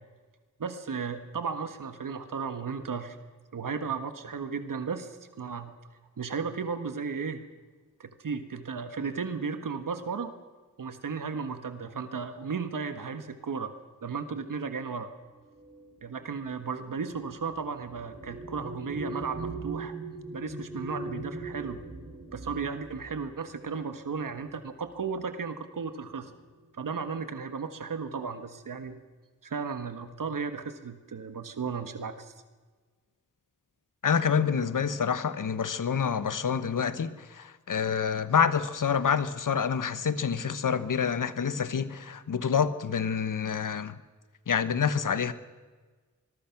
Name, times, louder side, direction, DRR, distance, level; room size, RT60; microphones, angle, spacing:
voice 1, 0.6-3.2 3.5-5.7 6.2-7.5 8.0-10.3 10.8-13.7 14.0-15.1 16.0-19.9 20.3-21.8 22.3-26.3 26.7-29.0 29.4-32.3, right 5 dB, 80° right, 1.6 m, -35 dB
sound 1, 15.5-24.4 25.3-25.5 25.8-26.4, right 2 dB, 30° right, 7.3 m, -41 dB
voice 2, 34.0-43.9 44.5-45.3, left 6 dB, 75° left, 1.2 m, -27 dB
25.5 x 21.5 x 6.0 m
wide cardioid pair, 105°, 32 cm